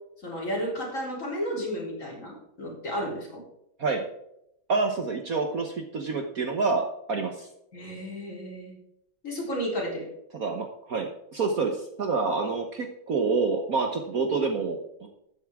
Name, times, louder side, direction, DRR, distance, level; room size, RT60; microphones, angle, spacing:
voice 1, 0.2-3.4 7.7-8.7 9.2-10.1, equal, 40° left, -2 dB, 4.0 m, -32 dB
voice 2, 4.7-7.5 10.3-15.1, right 4 dB, 55° right, 4 dB, 1.3 m, -28 dB
13.5 x 9.5 x 3.6 m, 0.79 s
omnidirectional pair, 2.2 m